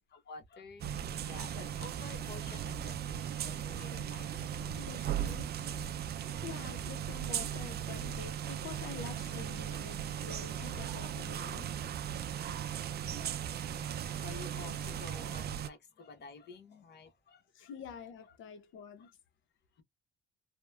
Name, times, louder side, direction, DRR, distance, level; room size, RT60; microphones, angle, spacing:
voice 1, 0.1-4.9 12.3-17.7 19.0-19.1, left 3 dB, 55° left, 0.9 m, -51 dB
sound 1, 0.8-15.7, right 9 dB, 55° right, 0.4 m, -37 dB
voice 2, 4.8-5.7 6.4-11.7 17.5-19.1, left 7 dB, 80° left, 0.6 m, -47 dB
2.8 x 2.1 x 2.2 m
cardioid pair, 90°, 20 cm